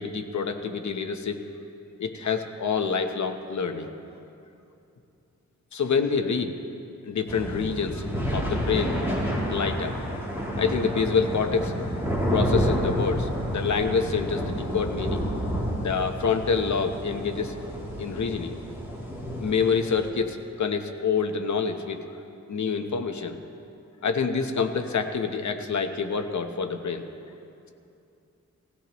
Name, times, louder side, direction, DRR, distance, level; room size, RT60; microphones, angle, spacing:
voice 1, 0.0-1.4 2.0-3.9 5.7-6.5 7.1-8.1 8.3-9.0 9.5-10.0 10.6-11.7 12.3-15.2 15.8-17.5 18.0-18.5 19.4-22.0 22.5-23.4 24.0-27.1, left 5 dB, 70° left, 6 dB, 1.0 m, -27 dB
sound 1, 7.3-20.1, equal, 10° right, 2.9 m, -29 dB
19.5 x 16.5 x 3.1 m, 2.7 s
wide cardioid pair, 105°, 30 cm